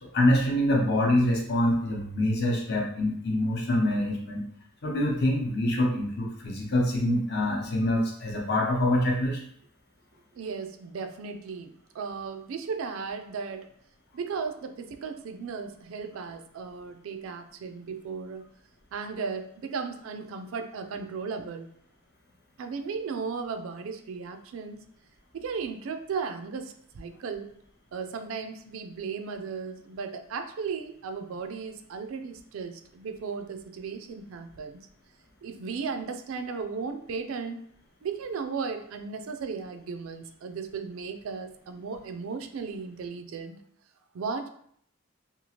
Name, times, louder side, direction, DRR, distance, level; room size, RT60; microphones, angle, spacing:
voice 1, 0.0-4.4 4.8-9.4, left 1 dB, 50° left, 0 dB, 0.6 m, -25 dB
voice 2, 10.3-13.7 14.1-18.5 18.9-21.7 22.6-24.8 25.3-27.5 27.9-34.9 35.4-37.6 38.0-43.6 44.1-44.5, right 5 dB, 75° right, 7 dB, 0.4 m, -36 dB
2.9 x 2.3 x 2.8 m, 0.65 s
head